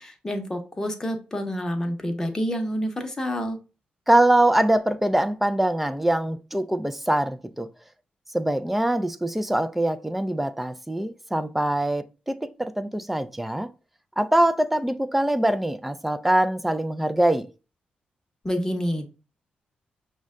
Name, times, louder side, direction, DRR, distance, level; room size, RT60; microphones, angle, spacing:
voice 1, 0.0-3.6 18.4-19.1, equal, 15° left, 0.8 m, -28 dB
voice 2, 4.1-7.7 8.3-13.7 14.2-17.5, right 1 dB, 5° right, 0.3 m, -23 dB
6.2 x 2.2 x 3.6 m
wide cardioid pair, 150°, 3 cm